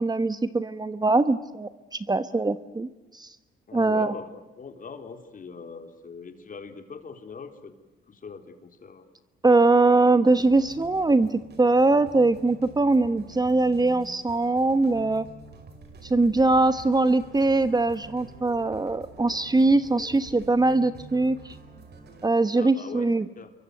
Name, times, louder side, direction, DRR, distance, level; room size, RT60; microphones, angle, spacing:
voice 1, 0.0-3.3 3.7-4.1 9.4-15.3 16.0-21.6 22.2-23.2, right 2 dB, 20° right, 12 dB, 1.2 m, -22 dB
voice 2, 3.7-4.3 4.6-7.7 8.1-9.1 22.5-23.5, left 5 dB, 45° left, 6 dB, 3.8 m, -42 dB
sound 1, 10.2-22.3, right 3 dB, 55° right, 5.4 m, -47 dB
27.5 x 23.5 x 7.9 m, 1.1 s
cardioid pair, 90°, 20 cm